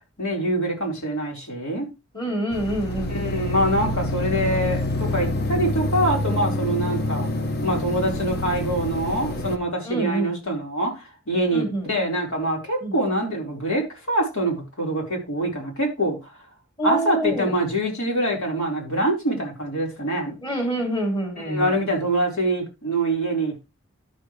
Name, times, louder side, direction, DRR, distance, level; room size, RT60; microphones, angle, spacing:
voice 1, 0.2-1.9 3.1-7.3 7.6-13.8 14.1-16.3 16.8-20.3 21.4-23.6, right 1 dB, 90° left, 4.4 m, -25 dB
voice 2, 2.1-3.1 9.8-10.3 11.5-11.9 12.8-12.9 16.8-17.5 20.4-21.7, right 1 dB, 25° left, 3.2 m, -26 dB
sound 1, 2.5-9.6, left 1 dB, 50° left, 0.9 m, -27 dB
12.0 x 6.6 x 3.3 m
head